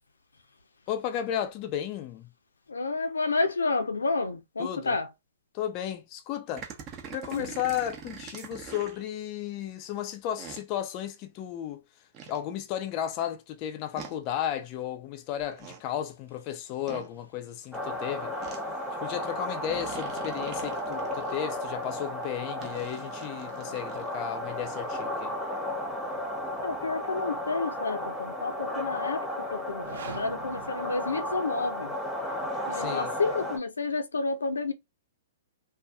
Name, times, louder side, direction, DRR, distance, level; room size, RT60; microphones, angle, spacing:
voice 1, 0.9-2.3 4.6-4.9 5.5-6.7 7.1-11.8 12.3-18.3 19.0-25.3 32.7-33.1, left 10 dB, 35° left, 0.5 m, -34 dB
voice 2, 2.7-5.1 7.3-7.5 26.6-32.0 32.7-34.7, left 3 dB, 90° left, 0.5 m, -30 dB
sound 1, 6.6-9.0 10.4-10.6 12.1-12.4 14.0-14.1 15.4-15.8 16.9-17.1 18.4-18.6 19.7-21.4 22.6-24.1, right 7 dB, 30° right, 0.7 m, -44 dB
sound 2, 17.7-33.6, left 1 dB, 10° left, 0.9 m, -34 dB
sound 3, 29.7-31.8, right 7 dB, 70° right, 0.6 m, -45 dB
2.6 x 2.4 x 2.3 m
hypercardioid pair, 125°, 0 cm